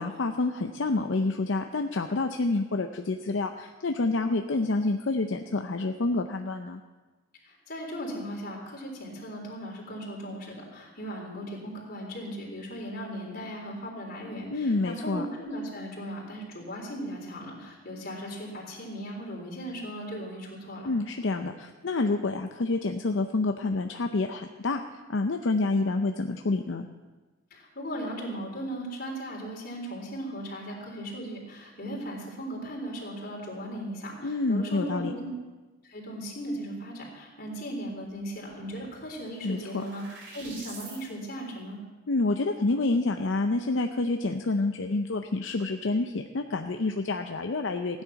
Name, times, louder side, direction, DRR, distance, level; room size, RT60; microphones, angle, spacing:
voice 1, 0.0-6.8 14.5-15.3 20.8-24.8 25.1-26.9 34.2-35.1 39.4-39.8 42.1-48.0, left 3 dB, 75° left, 5 dB, 0.6 m, -28 dB
voice 2, 7.4-20.9 27.5-35.3 35.8-40.0 40.3-41.8, equal, 50° left, -2 dB, 3.8 m, -37 dB
sound 1, 38.5-41.0, right 3 dB, 65° right, 3.3 m, -47 dB
16.0 x 9.9 x 5.8 m, 1.2 s
head